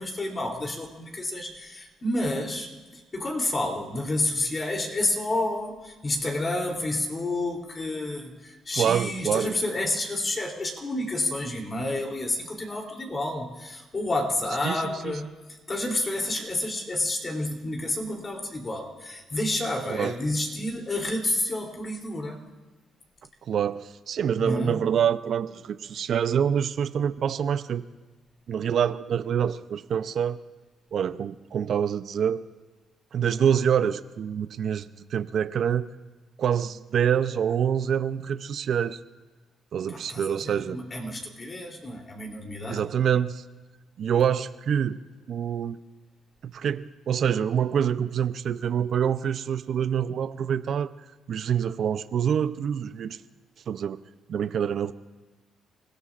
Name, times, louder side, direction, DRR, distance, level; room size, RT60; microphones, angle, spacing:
voice 1, 0.0-15.3 15.7-22.4 24.4-24.8 39.9-42.8, left 1 dB, 35° left, 1 dB, 3.1 m, -30 dB
voice 2, 8.8-9.5 14.6-15.1 19.9-20.1 23.5-27.8 28.5-30.4 30.9-32.5 33.1-35.9 36.4-39.0 39.7-40.8 42.7-43.4 44.0-45.0 45.3-45.8 46.5-50.9 51.3-53.2 53.7-54.0 54.3-54.9, right 8 dB, 60° right, 13 dB, 0.5 m, -26 dB
30.0 x 17.0 x 2.5 m, 1.3 s
cardioid pair, 90°, 0 cm